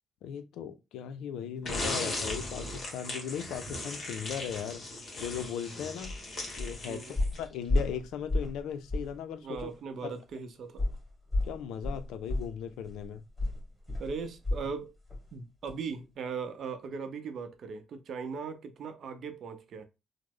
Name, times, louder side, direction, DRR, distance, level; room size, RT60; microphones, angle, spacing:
voice 1, 0.2-4.8 5.2-6.1 6.6-9.7 10.0-10.1 11.4-13.2, left 8 dB, 90° left, 0.4 m, -38 dB
sound 1, 1.6-7.5, left 2 dB, 45° left, 1.2 m, -37 dB
sound 2, 6.0-6.2 6.6-6.8 7.2-8.6 8.9-9.2 9.5-9.7 10.8-14.8 15.1-15.3 15.7-15.8, left 2 dB, 10° left, 1.9 m, -32 dB
voice 2, 9.4-10.9 14.0-14.9 15.3-19.9, right 5 dB, 60° right, 0.6 m, -39 dB
3.0 x 2.0 x 3.5 m
cardioid pair, 90°, 0 cm